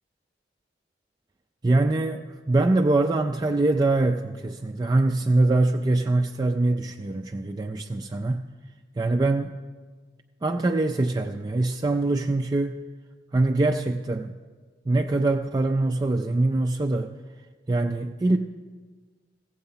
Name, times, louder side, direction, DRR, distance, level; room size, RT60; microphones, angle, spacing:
voice 1, 1.6-8.5 9.0-9.5 10.4-12.8 13.3-14.3 14.9-17.1 17.7-18.4, right 2 dB, 20° right, 4 dB, 0.3 m, -23 dB
15.0 x 7.9 x 5.6 m, 1.4 s
head